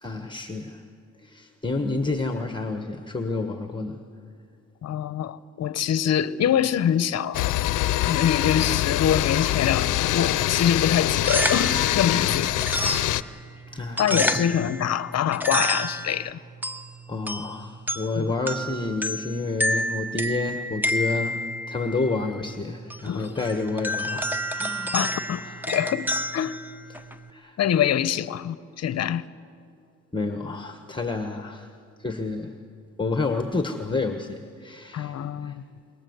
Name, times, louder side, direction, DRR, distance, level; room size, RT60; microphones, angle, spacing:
voice 1, 0.0-0.8 1.2-4.0 13.7-14.4 17.1-25.6 27.3-27.6 30.1-31.7 32.0-32.5 33.0-35.5, left 3 dB, 15° left, 1.4 m, -30 dB
voice 2, 4.8-7.6 8.0-12.5 14.0-16.4 18.1-18.3 23.1-23.4 24.9-26.5 27.6-29.2 34.9-35.6, left 9 dB, 60° left, 0.8 m, -25 dB
sound 1, 7.3-13.2, left 15 dB, 85° left, 0.7 m, -24 dB
sound 2, 11.0-27.3, equal, 5° right, 1.3 m, -30 dB
26.0 x 22.0 x 8.0 m
cardioid pair, 90°, 30 cm